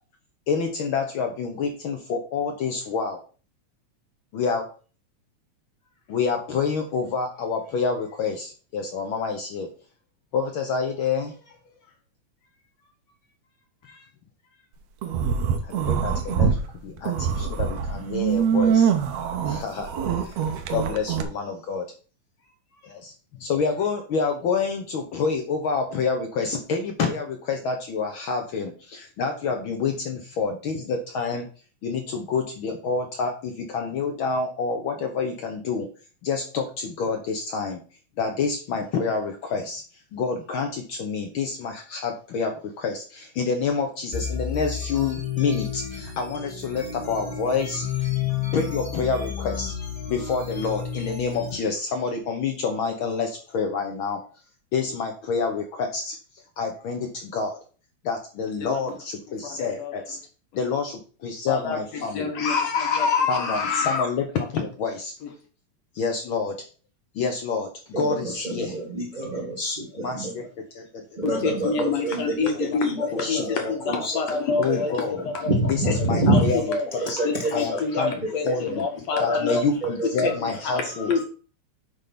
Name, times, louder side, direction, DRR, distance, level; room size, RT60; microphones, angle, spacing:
voice 1, 0.5-3.2 4.3-4.7 6.1-9.7 10.3-11.6 13.8-14.1 15.6-16.6 16.8-18.9 19.4-20.4 20.7-21.9 22.8-31.5 31.8-35.9 36.2-37.8 38.2-48.1 48.5-49.7 50.1-54.2 54.7-57.6 58.0-60.2 60.5-62.3 63.3-65.1 65.9-66.6 67.1-68.8 70.0-70.5 70.7-71.0 71.5-71.6 72.2-72.3 72.7-72.8 73.1-73.7 74.0-74.1 74.6-75.2 75.7-77.2 77.5-78.9 79.2-81.1, left 5 dB, 80° left, 4 dB, 1.1 m, -28 dB
sound 1, 15.0-16.6 17.0-21.2, right 7 dB, 70° right, 1.9 m, -24 dB
sound 2, 44.1-51.5, left 8 dB, 15° left, 1.7 m, -31 dB
voice 2, 59.4-59.9 61.5-64.1 71.2-75.5 75.9-76.9 77.2-79.6 80.2-81.2, left 5 dB, 60° left, 5 dB, 2.2 m, -27 dB
voice 3, 67.9-70.3 71.1-73.6 73.8-74.9 75.3-76.5 76.9-78.5 79.1-79.6 79.8-80.3 80.7-81.2, right 1 dB, 20° right, -2 dB, 1.4 m, -27 dB
8.9 x 3.6 x 5.9 m, 0.37 s
omnidirectional pair, 3.7 m